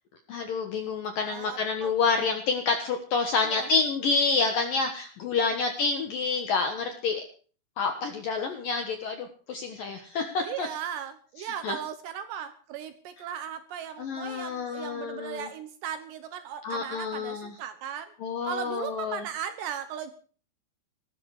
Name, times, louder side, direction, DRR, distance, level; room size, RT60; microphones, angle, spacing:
voice 1, 0.3-7.2 7.8-10.7 11.4-11.8 14.0-15.5 16.6-17.6 18.2-19.3, left 4 dB, 70° left, 6 dB, 2.1 m, -28 dB
voice 2, 1.2-1.9 3.4-3.7 10.4-18.1 18.4-20.1, right 9 dB, 75° right, 10 dB, 2.8 m, -37 dB
18.5 x 13.5 x 4.8 m, 0.42 s
omnidirectional pair, 5.9 m